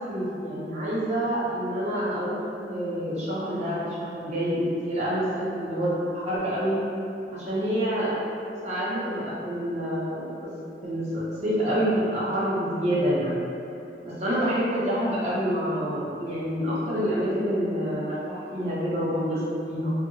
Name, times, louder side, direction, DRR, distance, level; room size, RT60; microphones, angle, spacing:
voice 1, 0.0-6.8 7.3-8.2 8.6-10.5 10.8-13.3 14.0-19.9, equal, 40° right, -9 dB, 0.5 m, -27 dB
2.6 x 2.0 x 2.6 m, 2.6 s
head